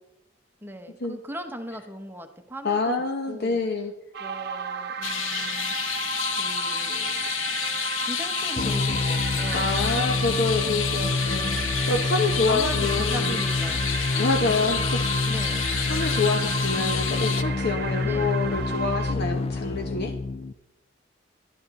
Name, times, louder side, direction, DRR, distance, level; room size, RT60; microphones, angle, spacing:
voice 1, 0.6-2.9 3.3-3.6 4.2-5.7 6.4-7.3 8.0-9.8 12.5-13.9 15.3-15.6 18.0-18.4, equal, 10° right, 6 dB, 1.0 m, -38 dB
voice 2, 2.6-3.9 9.5-13.4 14.2-15.1 15.9-20.1, left 3 dB, 55° left, 4 dB, 1.0 m, -27 dB
sound 1, 4.1-19.1, right 6 dB, 55° right, 0.8 m, -34 dB
sound 2, 5.0-17.4, left 9 dB, 85° left, 0.8 m, -30 dB
sound 3, 8.6-20.5, left 3 dB, 30° left, 0.3 m, -28 dB
12.5 x 12.0 x 4.1 m, 0.90 s
head